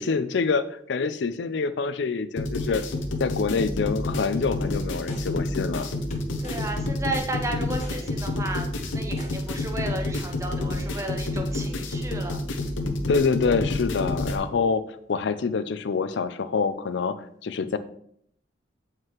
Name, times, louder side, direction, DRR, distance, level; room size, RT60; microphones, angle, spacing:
voice 1, 0.0-2.8 3.2-5.9 13.1-14.8 15.1-17.8, left 5 dB, 70° left, 13 dB, 0.4 m, -26 dB
sound 1, 2.4-14.4, left 2 dB, 90° left, 0.8 m, -29 dB
sound 2, 4.4-4.5 5.1-5.2 6.1-6.6 7.1-7.2 7.8-7.9 8.5-8.6 8.8-9.3 9.7-9.8, left 1 dB, 35° left, 1.0 m, -41 dB
voice 2, 6.4-12.4, right 1 dB, 15° right, 3 dB, 0.7 m, -33 dB
7.4 x 4.8 x 3.1 m, 0.67 s
head